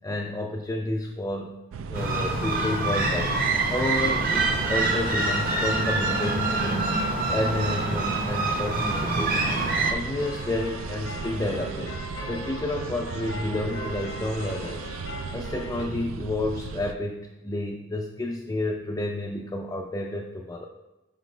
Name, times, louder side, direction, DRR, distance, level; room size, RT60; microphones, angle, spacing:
voice 1, 0.0-1.5 1.9-3.3 3.7-6.9 7.3-9.4 9.9-12.0 12.3-14.9 15.3-20.7, left 1 dB, 15° left, 1 dB, 0.4 m, -30 dB
sound 1, 1.7-16.9, right 5 dB, 90° right, 0.3 m, -37 dB
sound 2, 1.9-9.9, right 2 dB, 45° right, 0.9 m, -25 dB
sound 3, 10.0-15.9, left 1 dB, 80° left, 1.0 m, -39 dB
6.0 x 5.1 x 3.2 m, 1.0 s
head